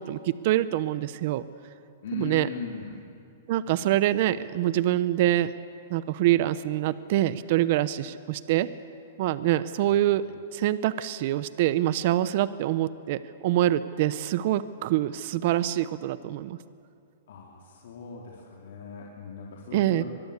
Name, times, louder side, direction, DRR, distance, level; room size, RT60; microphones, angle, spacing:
voice 1, 0.0-1.4 2.1-2.5 3.5-5.5 5.9-8.7 9.2-10.3 10.5-16.6 19.7-20.0, right 13 dB, 45° right, 15 dB, 0.8 m, -25 dB
voice 2, 2.0-3.0 9.8-10.0 17.3-20.0, left 6 dB, 70° left, -3 dB, 3.8 m, -39 dB
24.0 x 21.5 x 8.4 m, 2.4 s
hypercardioid pair, 160°, 0 cm